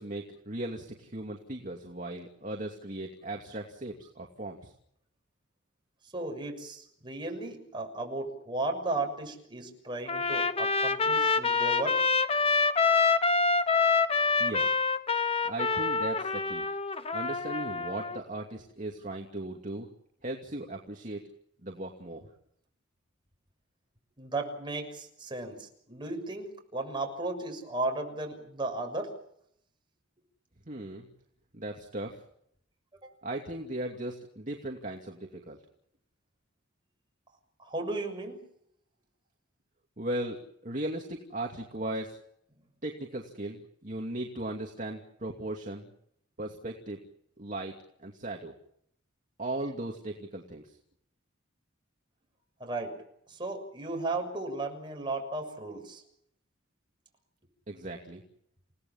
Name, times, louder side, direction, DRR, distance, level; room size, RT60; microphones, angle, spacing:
voice 1, 0.0-4.7 14.4-14.7 15.5-16.6 17.1-19.9 20.2-21.2 21.6-22.3 30.7-31.1 31.5-32.2 33.2-35.6 40.0-42.2 42.8-45.9 46.4-47.0 47.4-47.7 48.0-48.5 49.4-50.7 57.7-58.2, right 1 dB, 40° right, 1 dB, 2.6 m, -37 dB
voice 2, 6.1-12.0 24.2-29.1 33.0-33.1 37.6-38.4 52.6-53.0 53.3-56.0, right 2 dB, 25° right, 3 dB, 6.6 m, -35 dB
Trumpet, 10.1-18.2, left 4 dB, 30° left, 1.2 m, -26 dB
29.5 x 18.5 x 7.3 m, 0.72 s
head